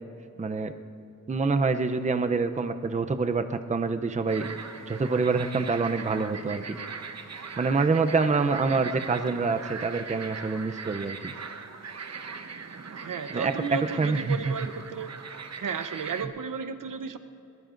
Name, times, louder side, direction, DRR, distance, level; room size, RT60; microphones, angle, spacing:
voice 1, 0.4-0.7 1.3-4.5 4.9-6.8 7.6-11.3 13.3-14.5, right 4 dB, 20° right, 8 dB, 0.5 m, -26 dB
sound 1, 4.3-16.2, right 5 dB, 55° right, 0.9 m, -40 dB
voice 2, 13.0-15.1 15.6-17.2, right 6 dB, 75° right, 10 dB, 0.8 m, -33 dB
21.5 x 19.5 x 2.5 m, 2.8 s
wide cardioid pair, 135°, 32 cm